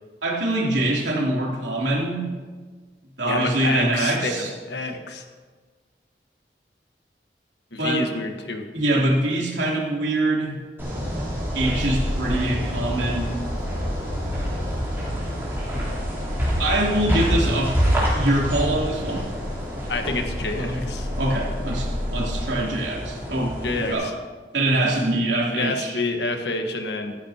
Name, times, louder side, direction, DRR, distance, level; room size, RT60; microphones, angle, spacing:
voice 1, 0.2-2.3 3.2-4.5 7.8-8.0 8.7-10.6 11.5-13.4 16.6-17.7 18.1-19.3 20.5-20.8 21.2-24.1 24.5-26.0, right 1 dB, 90° right, -3 dB, 3.1 m, -24 dB
voice 2, 3.2-5.2 7.7-8.6 19.9-21.1 23.6-24.1 25.5-27.2, left 2 dB, 80° left, 4 dB, 1.4 m, -28 dB
sound 1, 10.8-23.9, equal, 15° right, 3.5 m, -27 dB
sound 2, 11.6-22.5, left 1 dB, 55° left, 1.2 m, -33 dB
15.0 x 13.5 x 2.9 m, 1.4 s
head